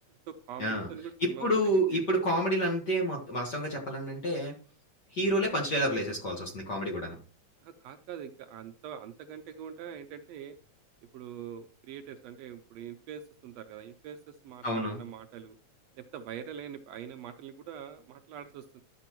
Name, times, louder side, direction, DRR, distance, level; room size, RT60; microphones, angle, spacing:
voice 1, 0.3-1.5 1.9-2.0 7.6-10.5 11.1-15.6 16.0-18.8, right 9 dB, 75° right, 7 dB, 1.6 m, -44 dB
voice 2, 1.2-4.5 5.1-7.2 14.6-15.0, equal, 45° left, 0 dB, 1.4 m, -29 dB
11.5 x 6.9 x 3.0 m, 0.38 s
omnidirectional pair, 3.4 m